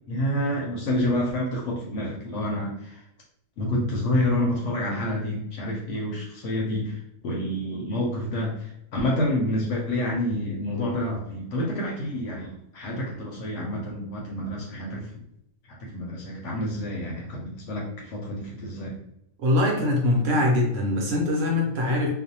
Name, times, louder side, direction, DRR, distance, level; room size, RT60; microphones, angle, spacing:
voice 1, 0.1-3.0 3.6-15.2 15.7-19.0, left 1 dB, 65° left, -2 dB, 0.8 m, -28 dB
voice 2, 19.4-22.1, left 2 dB, 65° right, -1 dB, 0.9 m, -23 dB
2.5 x 2.0 x 2.7 m, 0.78 s
omnidirectional pair, 1.6 m